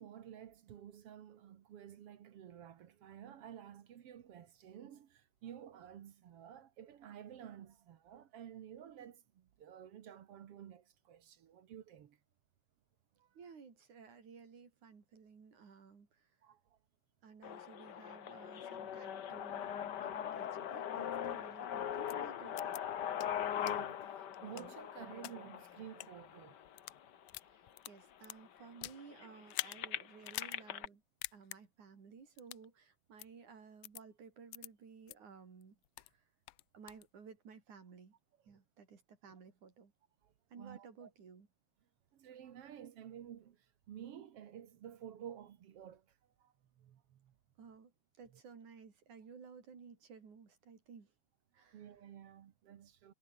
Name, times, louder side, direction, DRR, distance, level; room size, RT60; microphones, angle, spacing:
voice 1, 0.0-12.2 13.2-13.3 16.4-16.6 23.6-26.6 40.2-41.1 42.1-43.6 43.9-46.0 46.4-47.3 51.6-53.1, right 9 dB, 60° right, 2.1 m, -52 dB
voice 2, 13.4-16.3 17.2-22.8 27.4-31.0 31.3-35.8 36.1-36.2 36.7-38.1 38.5-39.9 40.5-41.5 47.6-47.9 48.2-51.1 51.5-51.9, right 5 dB, 90° right, 5.5 m, -56 dB
sound 1, 17.4-27.4 28.0-28.1 28.4-30.9, left 9 dB, 60° left, 1.1 m, -41 dB
sound 2, 22.1-22.2 22.6-22.8 23.2-23.3 23.7-23.8 24.3-25.3 25.9-26.1 26.6-27.0 27.3-29.0 29.5-29.8 30.2-30.6 30.9-31.0 31.2-31.6 32.4-32.7 33.2-33.3 33.8-34.0 34.5-34.7 35.1-35.2 35.6-36.1 36.5-37.0, left 19 dB, 85° left, 1.4 m, -44 dB
omnidirectional pair, 3.3 m